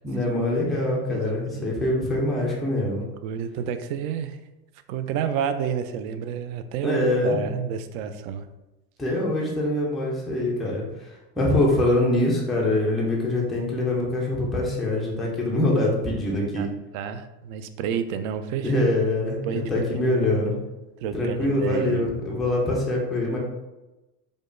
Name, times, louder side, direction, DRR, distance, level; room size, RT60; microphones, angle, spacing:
voice 1, 0.0-3.0 6.8-7.4 9.0-10.8 11.4-16.7 18.6-20.5 21.1-23.4, left 1 dB, ahead, -3 dB, 0.3 m, -24 dB
voice 2, 3.2-4.4 4.9-8.5 16.5-16.7 16.9-18.8 19.2-20.3 21.0-22.1, right 8 dB, 60° right, 9 dB, 0.5 m, -30 dB
5.0 x 2.1 x 2.5 m, 1.0 s
hypercardioid pair, 100°, 49 cm